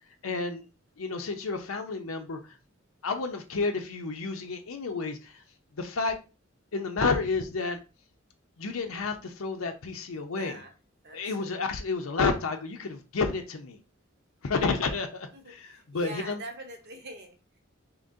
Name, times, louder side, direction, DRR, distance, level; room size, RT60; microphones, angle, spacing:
voice 1, 0.2-0.7 1.0-2.6 3.0-5.4 5.7-6.2 6.7-7.8 8.6-10.6 11.1-13.8 14.4-16.4, left 4 dB, 85° left, 0.6 m, -30 dB
voice 2, 10.1-10.7 11.0-11.5 14.5-14.8 15.3-17.6, right 2 dB, 55° right, 0.9 m, -45 dB
3.7 x 2.8 x 2.7 m
head